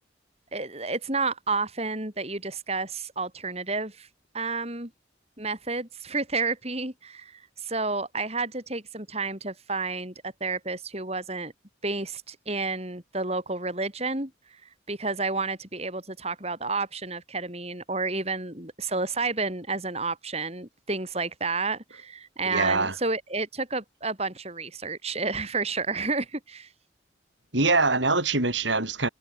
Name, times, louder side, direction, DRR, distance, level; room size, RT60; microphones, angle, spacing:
voice 1, 0.5-4.1 4.3-4.9 5.4-11.5 11.8-26.7, right 3 dB, 30° right, 5.7 m, -31 dB
voice 2, 22.5-22.9 27.5-29.1, right 3 dB, 70° right, 7.2 m, -23 dB
head